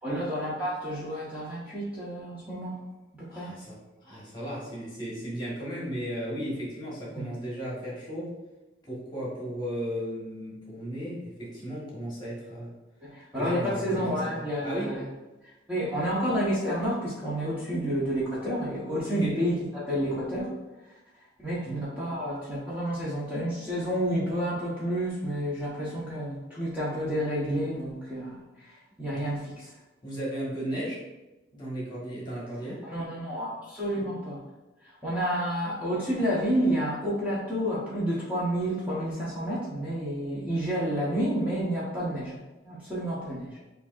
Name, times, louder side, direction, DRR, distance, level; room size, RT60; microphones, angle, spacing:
voice 1, 0.0-2.7 3.1-3.5 13.0-15.0 15.7-20.5 21.4-29.7 32.8-34.4 35.0-43.6, equal, 10° right, -9 dB, 1.0 m, -30 dB
voice 2, 3.3-8.3 8.8-12.7 13.4-14.0 14.3-14.9 19.2-19.3 21.6-21.8 29.1-29.2 30.0-31.0 31.5-32.8, equal, 25° left, -6 dB, 1.4 m, -35 dB
6.7 x 2.8 x 2.5 m, 1.1 s
head